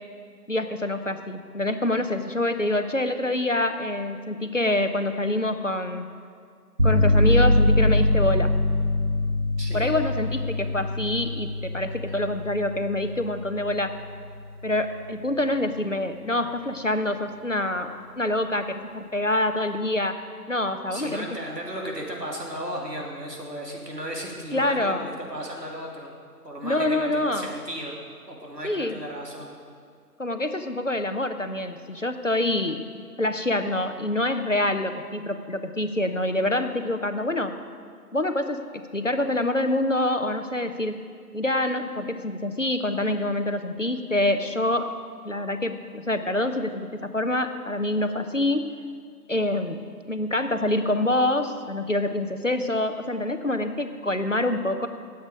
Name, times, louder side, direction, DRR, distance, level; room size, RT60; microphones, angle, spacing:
voice 1, 0.5-6.1 6.8-8.5 9.7-13.9 14.6-20.2 20.5-21.3 24.5-25.1 26.6-27.5 28.6-29.0 30.2-32.8 33.2-37.6 38.1-41.0 41.3-44.9 45.2-48.7 49.3-54.9, left 1 dB, 50° left, 8 dB, 0.8 m, -26 dB
sound 1, 6.8-14.5, left 1 dB, 40° right, 2.3 m, -23 dB
voice 2, 9.6-9.9 20.9-26.1 26.4-27.9 28.3-29.5, equal, 85° right, -1 dB, 3.2 m, -35 dB
18.5 x 8.1 x 5.1 m, 2.2 s
figure-of-eight pair, 175°, 48 cm